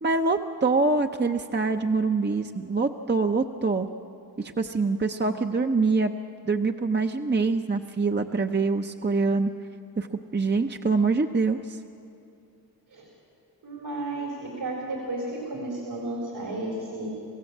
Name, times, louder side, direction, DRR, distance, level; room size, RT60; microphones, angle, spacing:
voice 1, 0.0-3.9 4.4-6.1 6.5-9.5 10.0-11.8, right 3 dB, 25° right, 5 dB, 0.8 m, -25 dB
voice 2, 13.6-17.1, right 2 dB, 75° right, -2 dB, 4.0 m, -33 dB
27.0 x 15.5 x 7.4 m, 2.6 s
cardioid pair, 55°, 39 cm